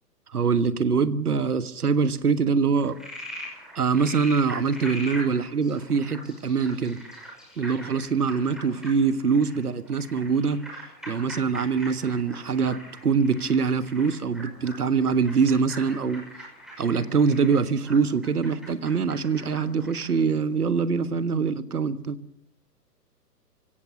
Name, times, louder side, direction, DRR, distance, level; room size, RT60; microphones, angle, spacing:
voice 1, 0.3-3.0 3.7-7.0 7.6-10.6 11.1-16.2 16.8-22.2, right 5 dB, 65° right, 13 dB, 1.5 m, -24 dB
Frog, 2.8-20.2, equal, ahead, 6.1 m, -42 dB
27.5 x 16.5 x 6.8 m, 0.69 s
figure-of-eight pair, 120°, 49 cm